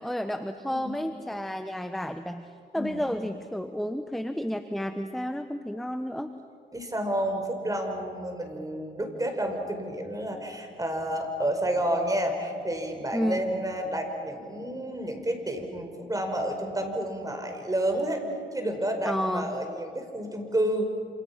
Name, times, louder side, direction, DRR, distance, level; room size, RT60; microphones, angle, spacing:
voice 1, 0.0-2.5 2.7-6.3 13.1-13.5 19.0-19.5, equal, ahead, 8 dB, 1.2 m, -31 dB
voice 2, 2.8-3.1 6.7-18.2 18.5-20.8, right 1 dB, 20° right, 4 dB, 5.1 m, -30 dB
28.5 x 28.0 x 5.9 m, 2.4 s
cardioid pair, 65°, 19 cm